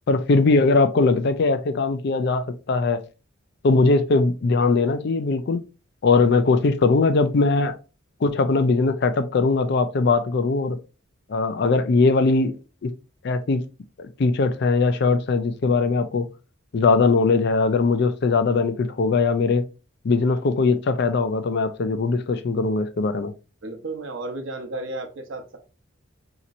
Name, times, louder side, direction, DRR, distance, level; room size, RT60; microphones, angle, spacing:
voice 1, 0.1-3.0 3.6-5.6 6.0-7.8 8.2-10.8 11.3-12.5 12.8-12.9 13.2-13.6 14.0-16.3 16.7-19.6 20.0-23.3, left 3 dB, 55° left, 0.4 m, -20 dB
voice 2, 23.6-25.6, right 2 dB, 65° right, 0.8 m, -33 dB
4.1 x 2.9 x 2.5 m
head